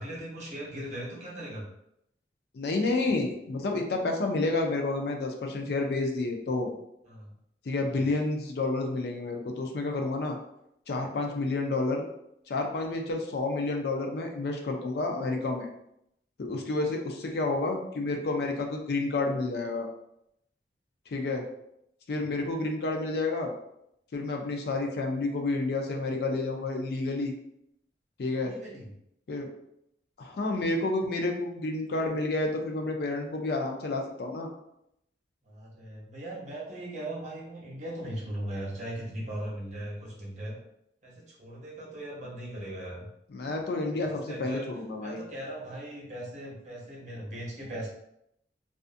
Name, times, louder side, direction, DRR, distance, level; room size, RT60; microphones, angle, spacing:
voice 1, 0.0-1.7 7.0-7.3 7.9-8.0 28.3-28.9 35.4-40.5 41.0-43.1 44.0-44.7 45.0-47.9, right 1 dB, 40° right, -4 dB, 0.8 m, -39 dB
voice 2, 2.5-6.7 7.7-10.4 10.9-12.0 12.5-15.7 16.4-19.9 21.1-21.4 22.1-23.5 24.1-27.3 28.2-28.5 29.3-29.5 30.2-34.5 43.3-45.2, left 2 dB, 60° left, 2 dB, 0.4 m, -30 dB
2.5 x 2.4 x 2.4 m, 0.78 s
head